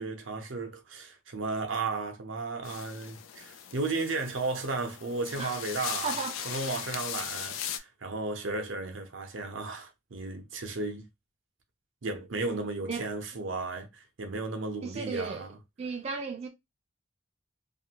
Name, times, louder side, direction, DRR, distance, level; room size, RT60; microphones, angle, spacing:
voice 1, 0.0-6.2 6.5-11.1 12.0-15.6, right 3 dB, 75° right, 0.7 m, -34 dB
sound 1, 2.6-7.8, left 9 dB, 90° left, 0.4 m, -39 dB
voice 2, 6.0-6.6 12.9-13.1 14.8-15.5 15.8-16.5, right 4 dB, 35° right, 0.5 m, -35 dB
2.6 x 2.5 x 2.8 m
head